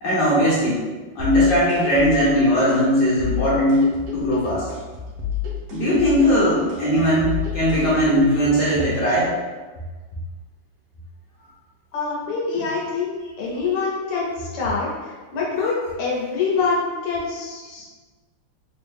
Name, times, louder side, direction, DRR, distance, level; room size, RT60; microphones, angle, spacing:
voice 1, 0.0-0.8 1.1-4.7 5.7-9.4, equal, 65° left, -7 dB, 1.1 m, -19 dB
sound 1, 1.2-9.2, left 7 dB, 80° right, 1.7 m, -31 dB
voice 2, 11.9-17.9, left 4 dB, 90° left, -5 dB, 1.8 m, -25 dB
4.2 x 2.0 x 3.4 m, 1.3 s
omnidirectional pair, 2.4 m